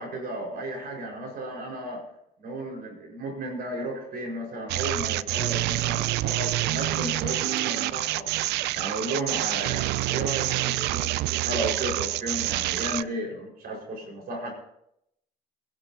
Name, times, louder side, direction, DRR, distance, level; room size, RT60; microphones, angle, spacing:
voice 1, 0.0-2.0 2.4-8.3 8.7-14.5, right 1 dB, 65° right, 0 dB, 5.2 m, -34 dB
sound 1, 4.7-13.0, right 17 dB, 80° right, 0.4 m, -27 dB
23.5 x 11.0 x 2.9 m, 0.77 s
cardioid pair, 110°, 17 cm